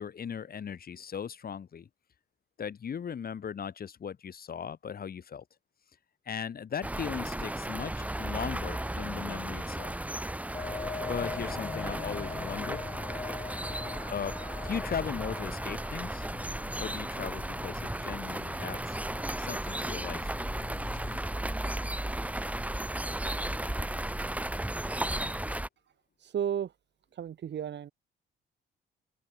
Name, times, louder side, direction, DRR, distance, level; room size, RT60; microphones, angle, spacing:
voice 1, 0.0-1.9 2.6-5.4 6.3-9.9 11.1-12.8 14.1-14.3 14.6-16.3 16.8-19.0 19.4-20.3, left 7 dB, 50° left, 3.0 m, -38 dB
sound 1, 6.8-25.7, right 1 dB, 5° right, 2.0 m, -35 dB
sound 2, 10.5-21.2, left 4 dB, 25° left, 2.6 m, -42 dB
voice 2, 26.2-26.7 27.2-27.9, right 9 dB, 60° right, 5.6 m, -33 dB
open air
cardioid pair, 90°, 20 cm